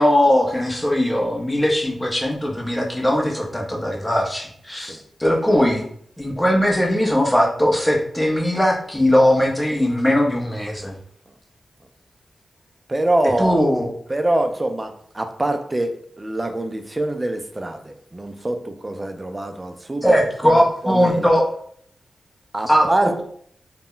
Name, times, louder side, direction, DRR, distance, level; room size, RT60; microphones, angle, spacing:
voice 1, 0.0-5.9 6.2-10.9 13.4-13.9 20.0-21.5 22.7-22.9, equal, 10° left, -1 dB, 0.7 m, -19 dB
voice 2, 12.9-13.6 14.1-20.2 20.4-21.3 22.5-23.2, right 1 dB, 25° right, 7 dB, 0.4 m, -24 dB
2.1 x 2.1 x 3.8 m, 0.63 s
cardioid pair, 70°, 0 cm